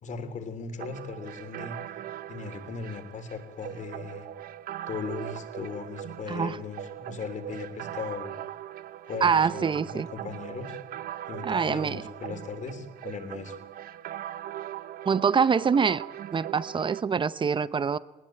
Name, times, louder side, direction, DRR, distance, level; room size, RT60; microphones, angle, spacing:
voice 1, 0.0-4.3 4.9-8.3 9.0-10.8 11.3-13.6, left 5 dB, 45° left, 7 dB, 3.3 m, -38 dB
sound 1, 0.8-17.0, right 12 dB, 60° right, 0.7 m, -40 dB
voice 2, 9.2-10.1 11.4-12.0 15.1-16.0 16.3-18.0, right 6 dB, 30° right, 17 dB, 0.8 m, -25 dB
20.0 x 19.5 x 8.9 m, 1.1 s
cardioid pair, 110°, 17 cm